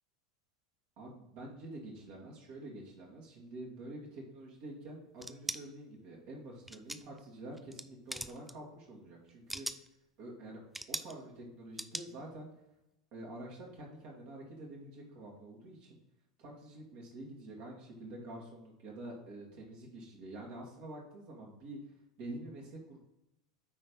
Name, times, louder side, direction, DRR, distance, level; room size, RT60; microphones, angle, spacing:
voice 1, 1.0-9.7 10.2-10.6 10.9-12.5 13.1-16.0 16.4-21.8 22.2-23.0, right 1 dB, 55° right, -2 dB, 2.1 m, -47 dB
sound 1, 5.2-5.6 6.7-7.2 7.6-7.8 8.1-8.5 9.3-9.9 10.7-11.1 11.8-12.1, right 1 dB, 5° right, 0.4 m, -39 dB
9.5 x 3.4 x 5.4 m, 0.89 s
hypercardioid pair, 85°, 3 cm